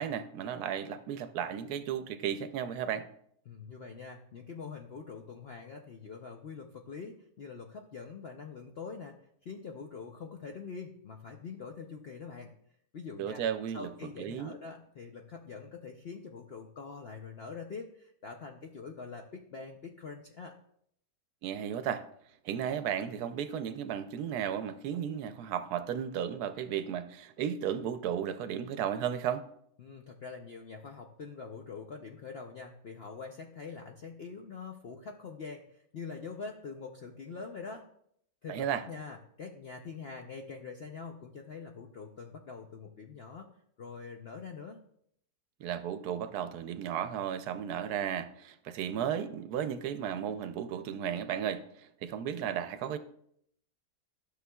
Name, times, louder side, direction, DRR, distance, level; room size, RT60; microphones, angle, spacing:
voice 1, 0.0-3.1 13.2-13.9 14.2-14.5 21.4-22.0 22.4-29.4 38.5-38.8 45.6-53.0, right 9 dB, 75° right, 11 dB, 1.0 m, -34 dB
voice 2, 3.5-12.5 12.9-13.4 13.7-20.6 29.8-37.8 38.4-43.5 43.8-44.8, left 5 dB, 65° left, 2 dB, 0.6 m, -44 dB
12.5 x 6.6 x 2.3 m, 0.69 s
omnidirectional pair, 1.7 m